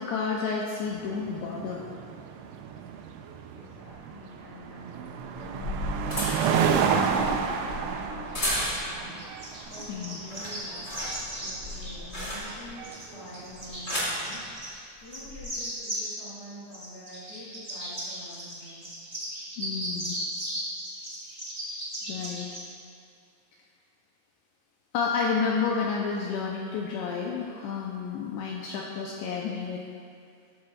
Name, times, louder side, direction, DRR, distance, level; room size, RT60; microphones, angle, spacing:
voice 1, 0.0-1.8 9.9-10.2 19.6-20.2 22.0-22.5 24.9-29.8, left 5 dB, 90° left, -1 dB, 2.4 m, -30 dB
sound 1, 0.9-14.4, right 6 dB, 80° right, 2.7 m, -31 dB
voice 2, 3.5-5.0 5.3-9.2 9.7-10.8 11.4-14.7 15.0-18.9, left 1 dB, 70° left, -9 dB, 1.2 m, -47 dB
sound 2, 3.9-4.0 5.2-9.1 9.6-9.9 10.2-12.8 13.5-14.2 15.1-15.4, left 1 dB, 25° left, 1.3 m, -34 dB
sound 3, 9.2-12.5 12.8-14.8 15.0-16.1 16.7-22.6, equal, 25° right, 0.8 m, -37 dB
13.0 x 12.0 x 2.4 m, 2.5 s
omnidirectional pair, 5.6 m